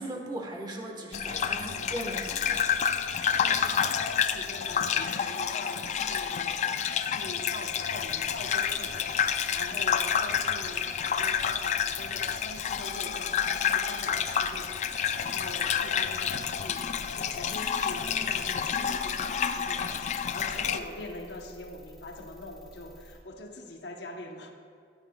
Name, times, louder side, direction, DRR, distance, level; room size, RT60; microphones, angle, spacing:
voice 1, 0.0-2.7, right 1 dB, 25° right, 1 dB, 1.2 m, -38 dB
Gurgling / Bathtub (filling or washing), 1.1-20.8, left 7 dB, 40° left, 0.3 m, -29 dB
voice 2, 1.6-2.0 3.3-24.5, left 1 dB, 80° left, 4 dB, 0.9 m, -43 dB
sound 1, 7.8-23.2, equal, ahead, 2.2 m, -52 dB
14.0 x 10.5 x 2.3 m, 2.3 s
head